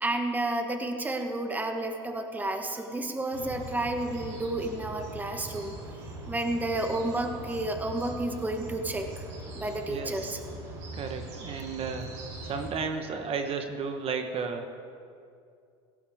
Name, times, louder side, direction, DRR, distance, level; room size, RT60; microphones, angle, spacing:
voice 1, 0.0-5.8 6.3-9.1 9.5-10.4, right 2 dB, 10° right, 4 dB, 1.3 m, -31 dB
sound 1, 3.3-12.7, right 2 dB, 85° right, 3.8 m, -41 dB
voice 2, 9.9-10.6 10.9-12.1 12.4-14.7, right 5 dB, 45° right, 5 dB, 1.3 m, -34 dB
16.5 x 15.0 x 3.6 m, 2.4 s
supercardioid pair, 95°, 14 cm